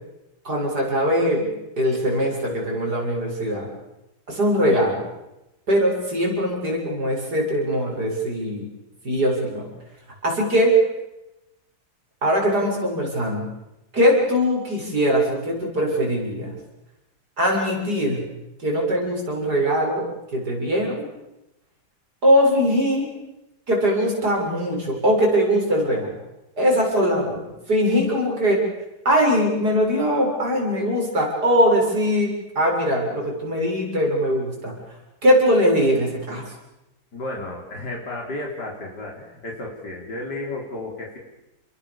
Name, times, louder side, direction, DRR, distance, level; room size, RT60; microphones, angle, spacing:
voice 1, 0.4-1.5 1.8-3.7 4.3-5.0 5.7-8.6 9.0-9.7 10.2-10.8 12.2-13.5 13.9-16.5 17.4-18.2 18.6-20.0 20.3-21.1 22.2-23.1 23.7-26.1 26.6-27.4 27.7-28.6 29.0-34.7 35.2-36.4, equal, 70° right, -1 dB, 8.2 m, -21 dB
voice 2, 37.1-41.2, left 2 dB, 85° left, -1 dB, 4.5 m, -33 dB
29.5 x 22.0 x 7.2 m, 0.95 s
omnidirectional pair, 1.8 m